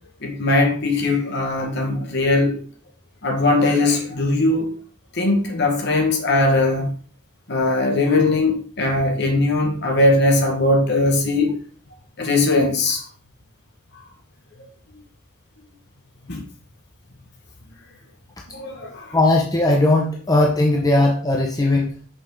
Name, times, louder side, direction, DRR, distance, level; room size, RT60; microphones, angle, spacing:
voice 1, 0.2-2.6 3.2-4.7 5.1-6.9 7.5-11.6 12.2-13.0 16.3-16.4 18.5-19.2, left 2 dB, 55° left, 1.8 m, -20 dB
voice 2, 19.1-22.0, left 2 dB, 20° left, 0.9 m, -18 dB
6.3 x 5.5 x 3.9 m
head